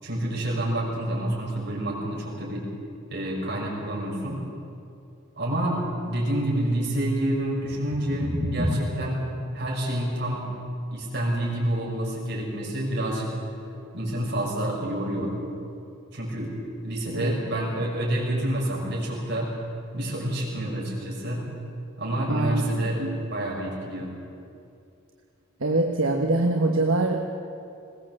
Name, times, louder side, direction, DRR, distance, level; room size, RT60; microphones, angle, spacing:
voice 1, 0.0-2.6 3.1-4.4 5.4-9.2 9.5-10.5 10.9-13.3 13.9-15.4 16.1-16.5 16.8-19.5 19.9-21.4 22.0-24.1, right 1 dB, 50° right, -3 dB, 6.0 m, -28 dB
sound 1, 7.4-13.5, left 1 dB, 25° right, 3.0 m, -33 dB
voice 2, 22.3-23.2 25.6-27.3, right 2 dB, 70° right, 2 dB, 1.3 m, -24 dB
21.0 x 18.0 x 7.7 m, 2.6 s
head